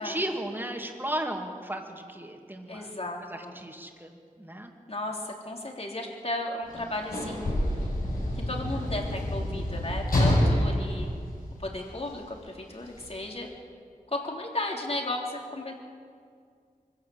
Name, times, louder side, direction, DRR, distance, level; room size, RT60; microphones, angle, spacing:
voice 1, 0.0-2.9 3.2-4.7, right 1 dB, 15° right, 2 dB, 2.8 m, -35 dB
voice 2, 2.7-3.6 4.9-7.9 8.4-11.1 11.6-13.5 14.1-15.7, left 2 dB, 45° left, 0 dB, 3.6 m, -35 dB
Sliding door / Slam, 6.7-12.1 13.0-13.1, left 1 dB, 85° left, 6.5 m, -27 dB
24.0 x 16.0 x 8.0 m, 2.2 s
wide cardioid pair, 65°, 15 cm